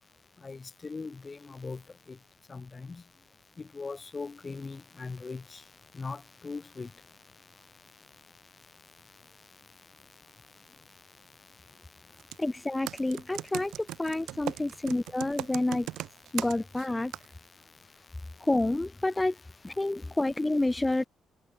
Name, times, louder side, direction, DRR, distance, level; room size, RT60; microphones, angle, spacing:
voice 1, 0.4-1.8 2.5-2.9 3.7-5.4 6.0-6.9, left 4 dB, 30° left, 3.9 m, -39 dB
Computer keyboard, 12.2-12.4 12.9-16.9 17.1-17.3, right 14 dB, 85° right, 1.7 m, -37 dB
voice 2, 12.4-15.9 16.3-17.1 18.4-19.3 19.6-21.0, left 2 dB, 15° left, 0.7 m, -29 dB
cardioid pair, 90°, 0 cm